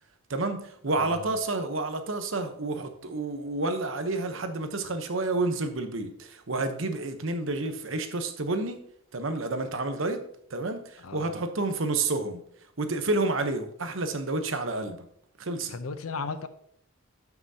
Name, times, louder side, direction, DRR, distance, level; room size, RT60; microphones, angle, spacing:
voice 1, 0.3-8.8 9.1-10.2 10.5-12.4 12.8-15.1 15.4-15.7, right 2 dB, 65° right, 8 dB, 1.0 m, -30 dB
voice 2, 1.0-1.3 11.0-11.3 15.7-16.5, left 4 dB, 85° left, 12 dB, 0.7 m, -36 dB
12.5 x 6.0 x 2.8 m, 0.69 s
head